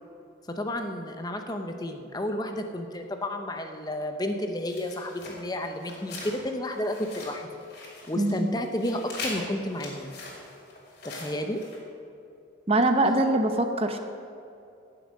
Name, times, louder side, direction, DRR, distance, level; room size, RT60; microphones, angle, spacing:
voice 1, 0.5-7.5 8.1-10.1 11.0-11.6, left 1 dB, 20° left, 5 dB, 0.7 m, -31 dB
sound 1, 4.7-6.4 6.6-8.3 8.6-11.8, left 2 dB, 50° left, 3.2 m, -41 dB
voice 2, 8.2-8.5 12.7-14.0, right 2 dB, 30° right, 6 dB, 0.7 m, -23 dB
17.0 x 6.9 x 6.4 m, 2.6 s
head